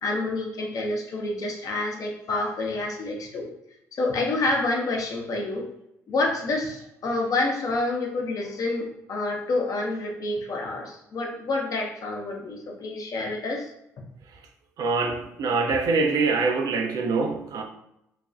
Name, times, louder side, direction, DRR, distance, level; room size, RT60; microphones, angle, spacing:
voice 1, 0.0-3.5 3.9-5.7 6.1-13.7, left 2 dB, 50° left, 1 dB, 0.6 m, -28 dB
voice 2, 14.8-17.6, right 4 dB, 55° right, 4 dB, 0.4 m, -24 dB
2.3 x 2.2 x 2.5 m, 0.81 s
hypercardioid pair, 45°, 8 cm